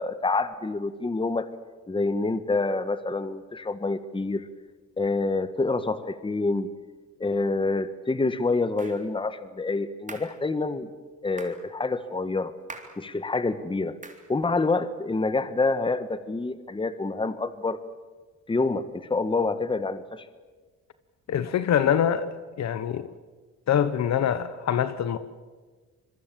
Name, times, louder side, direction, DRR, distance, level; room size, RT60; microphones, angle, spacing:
voice 1, 0.0-1.5 1.9-4.5 5.0-6.7 7.2-10.9 11.2-12.5 13.0-14.0 14.3-17.8 18.5-20.2, left 3 dB, 15° left, 1.4 m, -27 dB
sound 1, 8.8-9.0 10.1-10.4 11.4-11.6 12.7-13.0 14.0-14.3, right 3 dB, 25° right, 3.7 m, -42 dB
voice 2, 21.3-22.3 22.6-23.1 23.7-25.2, left 9 dB, 65° left, 1.2 m, -24 dB
26.0 x 22.0 x 7.6 m
cardioid pair, 90°, 30 cm